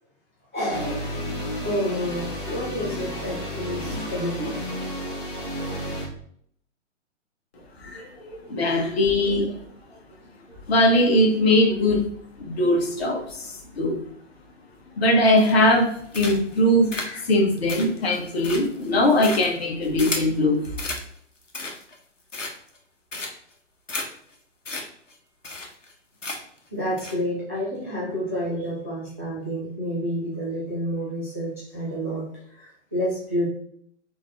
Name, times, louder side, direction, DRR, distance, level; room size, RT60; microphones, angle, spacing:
voice 1, 0.5-1.2 1.6-4.5 26.7-33.5, equal, 15° right, -8 dB, 0.3 m, -29 dB
sound 1, 0.7-6.1, equal, 15° left, 0.7 m, -32 dB
voice 2, 7.8-8.1 8.5-9.5 10.7-12.0 12.4-14.0 15.0-20.6, left 1 dB, 55° left, 1 dB, 1.1 m, -21 dB
sound 2, 15.4-15.8 16.1-16.6 16.9-20.4 20.8-21.0 21.4-21.9 22.3-22.8 23.1-23.5 23.9-24.0 24.3-24.4 24.6-24.8 25.1-25.2 25.4-25.9 26.2-26.6 27.0-27.1, left 2 dB, 80° left, 0.9 m, -33 dB
3.8 x 2.7 x 3.5 m, 0.65 s
figure-of-eight pair, 120°, 37 cm